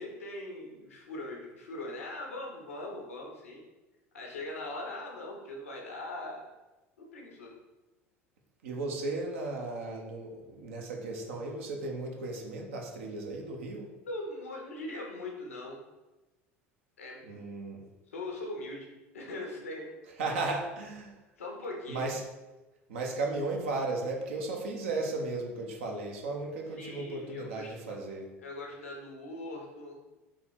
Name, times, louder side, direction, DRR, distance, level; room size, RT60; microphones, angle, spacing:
voice 1, 0.0-3.6 4.1-6.4 7.0-7.5 14.0-15.8 17.0-17.4 18.1-18.9 19.1-19.9 20.3-20.4 21.4-22.1 26.8-28.1 28.4-30.0, left 2 dB, 80° left, 0 dB, 1.0 m, -41 dB
voice 2, 8.6-13.9 17.2-17.8 20.2-21.1 21.9-22.2 22.9-28.3, right 3 dB, 70° right, 1 dB, 0.7 m, -35 dB
3.9 x 3.0 x 4.2 m, 1.1 s
figure-of-eight pair, 70°, 7 cm